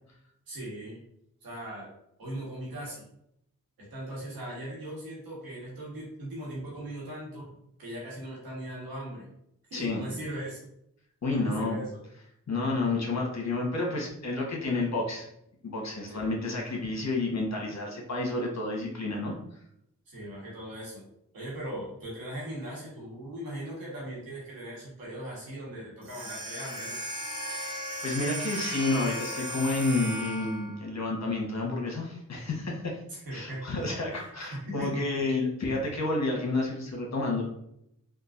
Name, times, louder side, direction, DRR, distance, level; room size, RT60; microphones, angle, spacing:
voice 1, 0.5-1.0 1.4-1.9 2.2-3.0 3.8-7.5 7.8-9.3 9.7-10.6 11.3-12.0 16.1-16.3 20.1-21.0 21.3-27.0 33.1-33.6 34.1-35.0, right 1 dB, 90° right, -5 dB, 1.4 m, -39 dB
voice 2, 11.2-11.8 12.5-15.3 15.6-19.3 27.5-33.0 33.3-37.4, left 2 dB, 50° left, -1 dB, 1.2 m, -30 dB
sound 1, 26.0-30.8, equal, 50° right, 1.2 m, -36 dB
3.8 x 2.4 x 2.5 m, 0.75 s
cardioid pair, 45°, 34 cm